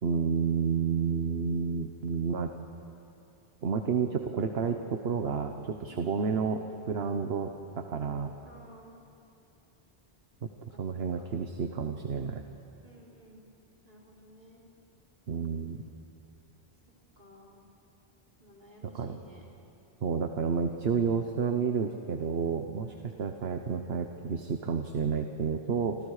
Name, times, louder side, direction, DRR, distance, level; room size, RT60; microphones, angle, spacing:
voice 1, 0.0-2.5 3.6-8.3 10.4-10.5 10.8-12.4 15.3-15.8 18.9-19.2 20.0-26.0, right 6 dB, 70° right, 6 dB, 1.2 m, -30 dB
voice 2, 8.4-9.0 10.7-10.8 11.1-11.3 12.8-13.5 13.8-14.6 17.2-17.6 18.4-19.4 22.8-23.4, equal, 45° right, -4 dB, 4.6 m, -54 dB
27.5 x 27.5 x 4.9 m, 2.8 s
omnidirectional pair, 1.1 m